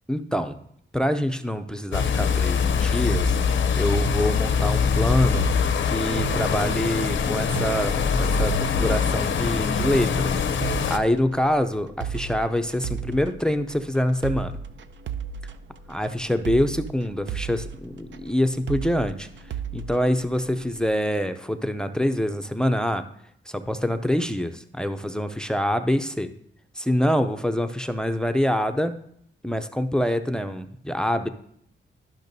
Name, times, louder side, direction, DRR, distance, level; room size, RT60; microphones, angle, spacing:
voice 1, 0.1-0.6 0.9-5.5 5.8-14.5 15.9-19.3 19.7-23.0 23.5-26.3 26.8-28.9 29.4-31.3, equal, 5° left, 9 dB, 0.5 m, -25 dB
sound 1, 1.9-11.0, left 6 dB, 70° left, 0.6 m, -23 dB
sound 2, 3.1-20.9, right 7 dB, 65° right, 0.5 m, -36 dB
12.0 x 5.8 x 2.7 m, 0.68 s
cardioid pair, 85°, 20 cm